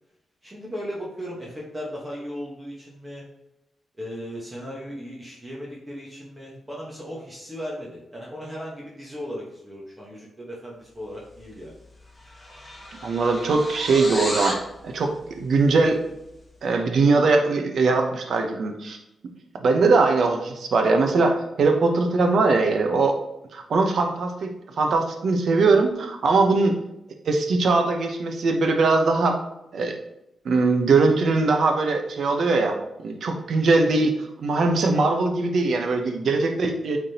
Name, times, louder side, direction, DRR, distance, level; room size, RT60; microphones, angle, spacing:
voice 1, 0.4-3.2 4.0-11.7, equal, 15° right, -4 dB, 1.3 m, -36 dB
sound 1, 11.5-11.7 12.0-14.7, left 1 dB, 15° left, 1.3 m, -33 dB
voice 2, 13.0-16.0 16.6-19.0 19.5-23.2 23.5-26.8 27.2-29.4 29.7-30.0 30.4-37.0, right 3 dB, 65° right, 4 dB, 0.9 m, -21 dB
8.8 x 3.7 x 2.9 m, 0.87 s
cardioid pair, 110°, 0 cm